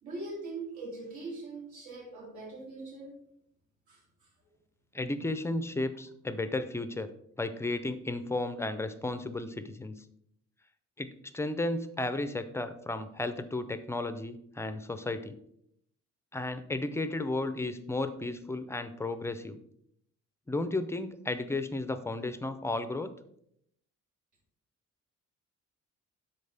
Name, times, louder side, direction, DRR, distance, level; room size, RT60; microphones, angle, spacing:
voice 1, 0.0-3.1 3.9-4.0, right 3 dB, 80° right, -2 dB, 2.9 m, -41 dB
voice 2, 4.9-7.1 7.4-9.9 11.0-15.4 16.3-19.6 20.5-23.1, left 2 dB, 10° left, 11 dB, 0.3 m, -33 dB
12.0 x 4.3 x 3.3 m, 0.72 s
cardioid pair, 175°, 29 cm